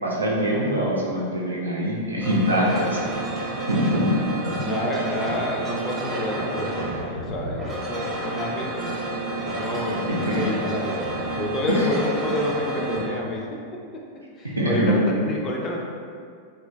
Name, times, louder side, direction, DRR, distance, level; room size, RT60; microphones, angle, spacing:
voice 1, 0.0-3.0 3.7-4.1 4.5-4.6 9.5-9.6 10.1-10.4 14.4-14.9, equal, 80° right, -4 dB, 0.5 m, -23 dB
sound 1, 2.2-13.0, right 2 dB, 20° right, 0.6 m, -30 dB
voice 2, 2.5-3.1 3.7-4.0 4.5-8.9 9.4-13.6 13.9-14.0 14.4-14.9 15.3-15.8, left 1 dB, 25° left, -1 dB, 0.4 m, -29 dB
3.0 x 2.3 x 2.2 m, 2.2 s
figure-of-eight pair, 90°, 0 cm